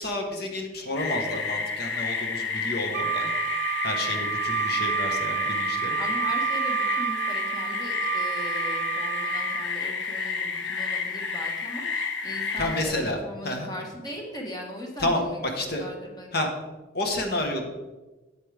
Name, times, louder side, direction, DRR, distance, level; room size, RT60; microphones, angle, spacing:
voice 1, 0.0-3.3 3.8-6.0 12.6-13.2 13.4-13.7 15.0-15.8 16.3-16.5 16.9-17.7, left 1 dB, 55° left, 4 dB, 1.3 m, -30 dB
sound 1, 1.0-12.8, left 5 dB, 80° left, 0.9 m, -30 dB
Wind instrument woodwind instrument, 2.9-9.7, right 11 dB, 55° right, 0.3 m, -30 dB
voice 2, 5.9-16.3, left 1 dB, 20° left, 0 dB, 1.5 m, -39 dB
8.9 x 8.4 x 3.4 m, 1.2 s
head